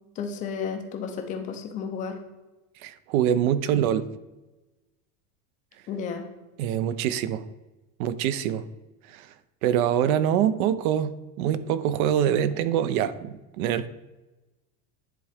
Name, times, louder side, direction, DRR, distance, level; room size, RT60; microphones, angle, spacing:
voice 1, 0.2-2.2 5.9-6.2, left 6 dB, 20° left, 5 dB, 0.3 m, -32 dB
voice 2, 2.8-4.1 6.6-7.4 8.0-8.6 9.1-9.3 9.6-13.9, right 10 dB, 70° right, 14 dB, 0.6 m, -24 dB
10.0 x 3.6 x 3.4 m, 1.1 s
supercardioid pair, 150°, 45 cm